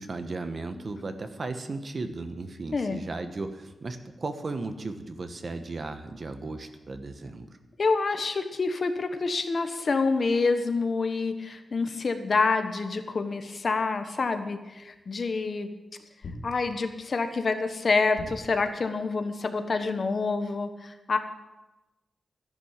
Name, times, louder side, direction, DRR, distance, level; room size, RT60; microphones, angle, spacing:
voice 1, 0.0-7.5, right 3 dB, 40° right, 8 dB, 1.2 m, -35 dB
voice 2, 7.8-15.7 16.4-21.2, left 4 dB, 45° left, 8 dB, 1.2 m, -27 dB
sound 1, 14.9-15.0 16.2-17.0 18.2-18.9, left 2 dB, 70° left, 1.9 m, -41 dB
13.5 x 11.0 x 7.3 m, 1.1 s
wide cardioid pair, 160°, 0 cm